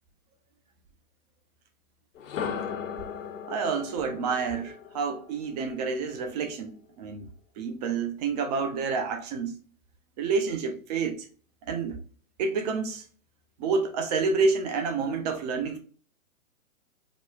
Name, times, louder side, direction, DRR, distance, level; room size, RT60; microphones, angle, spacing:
sound 1, 2.1-6.1, left 7 dB, 65° left, 0.8 m, -37 dB
voice 1, 3.5-7.3 7.6-9.6 10.2-11.3 11.7-12.0 12.4-13.0 13.6-15.8, right 4 dB, 30° right, 0.6 m, -29 dB
4.7 x 2.3 x 2.3 m
hypercardioid pair, 135°, 41 cm